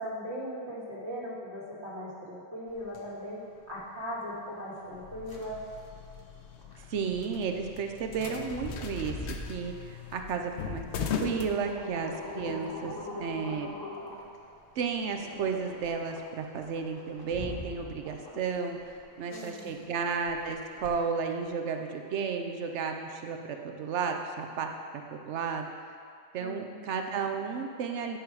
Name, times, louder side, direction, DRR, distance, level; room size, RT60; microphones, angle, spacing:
voice 1, 0.0-3.4 3.7-5.6 19.3-19.8 26.4-26.8, equal, 75° right, -7 dB, 2.3 m, -39 dB
sound 1, 2.7-21.5, left 2 dB, 20° left, 0.8 m, -44 dB
sound 2, 4.9-12.3, left 7 dB, 80° left, 0.9 m, -39 dB
voice 2, 6.9-12.9 13.2-13.7 14.8-24.7 25.1-25.7 26.3-28.2, right 5 dB, 90° right, 4 dB, 1.0 m, -33 dB
9.4 x 4.7 x 4.7 m, 2.3 s
omnidirectional pair, 1.1 m